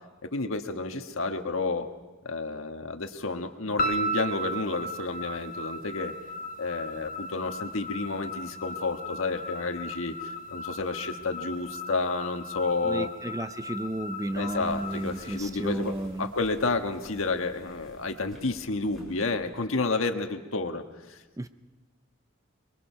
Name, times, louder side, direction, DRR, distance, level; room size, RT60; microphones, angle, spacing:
voice 1, 0.3-1.9 2.3-6.1 6.6-10.1 10.5-13.1 14.4-20.8, left 3 dB, 75° left, 6 dB, 1.5 m, -30 dB
sound 1, 3.8-16.1, equal, 45° left, 1.1 m, -36 dB
voice 2, 12.8-16.3 21.4-21.5, right 1 dB, 15° right, 10 dB, 0.6 m, -33 dB
Waves surf, 13.6-18.8, right 1 dB, 65° right, 7.5 m, -59 dB
sound 2, 14.2-19.6, equal, ahead, 6.5 m, -55 dB
24.0 x 22.5 x 5.7 m, 1.2 s
head